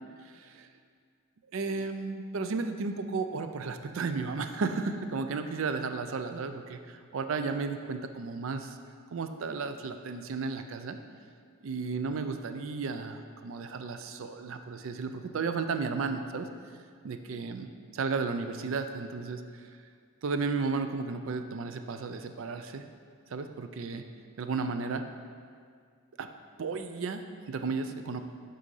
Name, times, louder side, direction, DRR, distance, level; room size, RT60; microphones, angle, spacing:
voice 1, 0.2-0.7 1.5-8.8 9.1-11.0 11.6-16.5 17.0-19.7 20.2-22.9 23.3-24.0 24.4-25.0 26.2-26.3 26.6-28.2, right 4 dB, 65° right, 8 dB, 0.4 m, -34 dB
6.2 x 4.1 x 5.4 m, 2.1 s
head